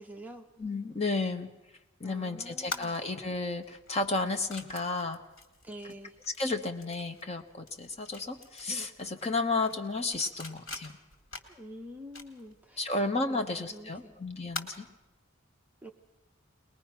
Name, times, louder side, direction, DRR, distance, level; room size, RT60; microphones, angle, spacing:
voice 1, 0.0-0.5 2.0-3.0 5.6-6.2 11.5-13.0 13.3-14.2 15.8-15.9, equal, 10° right, 4 dB, 0.8 m, -46 dB
voice 2, 0.6-1.5 2.0-5.2 6.4-10.9 12.8-14.9, left 3 dB, 30° left, 6 dB, 1.1 m, -32 dB
sound 1, 2.7-15.2, left 3 dB, 85° left, 2.4 m, -46 dB
22.0 x 20.5 x 5.9 m, 1.0 s
head